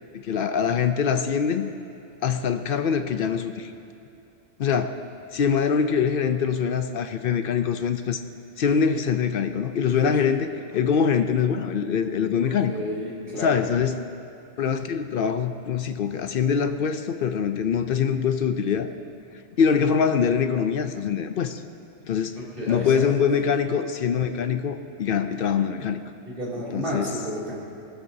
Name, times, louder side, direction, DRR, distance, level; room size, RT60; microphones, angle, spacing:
voice 1, 0.1-1.7 2.2-3.7 4.6-4.9 5.3-8.2 8.6-12.7 13.4-14.0 14.6-18.9 19.6-21.6 22.0-22.3 22.7-26.0 26.7-27.1, left 7 dB, 60° left, 9 dB, 0.6 m, -24 dB
voice 2, 12.4-13.5 22.4-23.2 26.2-27.6, equal, 45° right, -7 dB, 3.0 m, -31 dB
19.5 x 12.5 x 2.7 m, 2.5 s
omnidirectional pair, 1.3 m